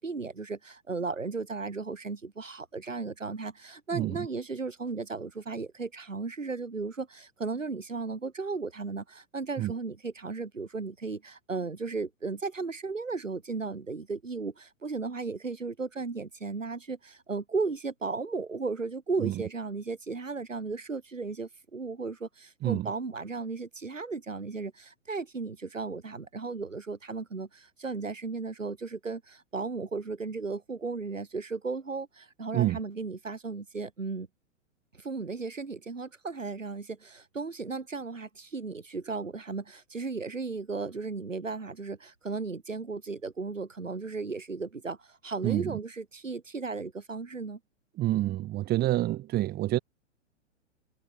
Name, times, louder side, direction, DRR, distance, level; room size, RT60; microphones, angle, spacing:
voice 1, 0.0-34.3 34.9-47.6, right 4 dB, 80° right, 6.3 m, -35 dB
voice 2, 45.4-45.8 48.0-49.8, right 15 dB, 25° right, 3.8 m, -28 dB
figure-of-eight pair, 110°, 38 cm